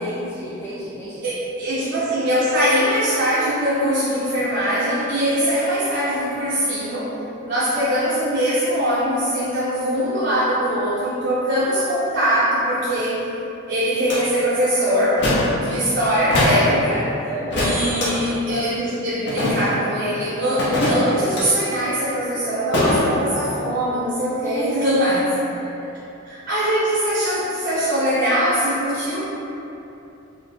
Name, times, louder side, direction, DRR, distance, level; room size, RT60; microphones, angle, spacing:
voice 1, 0.0-1.2 17.2-17.9 24.4-24.8 25.8-25.9, equal, 15° left, -10 dB, 0.4 m, -32 dB
voice 2, 1.2-7.1 7.5-13.2 13.7-15.2 15.5-17.2 17.5-25.3 26.2-29.2, equal, 55° right, -10 dB, 0.6 m, -22 dB
sound 1, 14.1-14.2 15.2-15.5 16.3-16.6 17.5-18.1 19.3-19.8 20.6-21.4 22.7-23.0, left 1 dB, 60° left, 0.8 m, -21 dB
4.8 x 2.0 x 3.3 m, 2.9 s
head